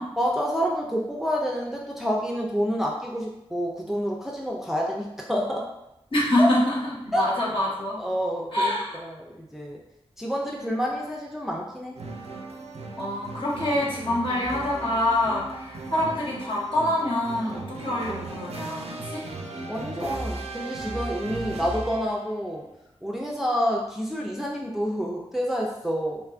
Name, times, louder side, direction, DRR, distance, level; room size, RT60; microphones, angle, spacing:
voice 1, 0.2-5.6 6.4-6.5 7.1-7.2 8.0-8.7 9.0-9.8 10.2-11.9 19.7-22.6 23.0-26.2, equal, 5° right, -2 dB, 0.4 m, -28 dB
voice 2, 6.1-8.0 8.5-9.0 13.0-19.2, left 1 dB, 55° left, -6 dB, 1.0 m, -26 dB
sound 1, 12.0-22.4, right 2 dB, 80° right, 0.4 m, -37 dB
2.9 x 2.3 x 2.4 m, 0.87 s
wide cardioid pair, 70°, 10 cm